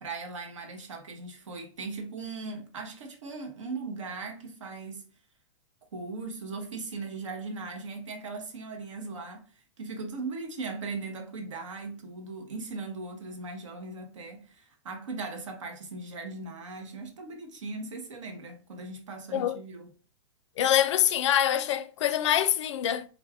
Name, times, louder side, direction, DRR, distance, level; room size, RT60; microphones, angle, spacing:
voice 1, 0.0-5.1 5.9-9.5 9.8-19.9, right 3 dB, 85° right, 0.8 m, -38 dB
voice 2, 20.6-23.0, left 10 dB, 70° left, 0.4 m, -25 dB
2.5 x 2.2 x 3.4 m
hypercardioid pair, 120°, 16 cm